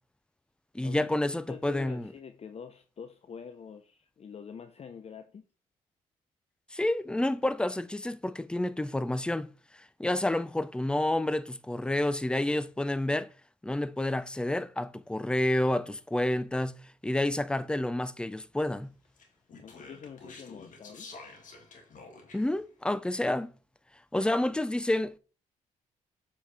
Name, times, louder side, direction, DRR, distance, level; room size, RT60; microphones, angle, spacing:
voice 1, 0.7-2.1 6.7-9.5 10.0-13.3 13.6-18.9 22.3-23.5 24.1-25.2, left 1 dB, 5° left, 0.5 m, -29 dB
voice 2, 1.3-5.5 19.6-21.1, left 6 dB, 45° left, 0.6 m, -46 dB
Speech, 19.2-22.6, left 3 dB, 60° left, 1.9 m, -49 dB
7.3 x 4.5 x 3.4 m
cardioid pair, 70°, 14 cm